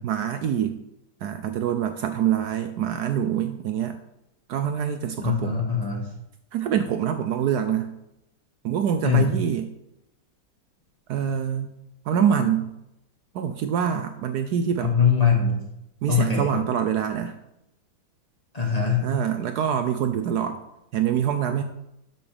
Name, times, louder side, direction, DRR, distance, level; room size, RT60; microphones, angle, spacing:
voice 1, 0.0-0.8 1.2-4.0 4.5-5.6 6.5-7.9 8.6-9.7 11.1-11.7 12.0-12.7 13.3-14.9 16.0-17.4 19.0-20.6 20.9-21.6, right 8 dB, 70° right, 8 dB, 1.1 m, -25 dB
voice 2, 5.2-6.0 9.0-9.3 14.8-15.6 16.1-16.6 18.5-19.1, left 6 dB, 20° left, -1 dB, 1.7 m, -22 dB
12.0 x 6.0 x 3.5 m, 0.83 s
omnidirectional pair, 1.9 m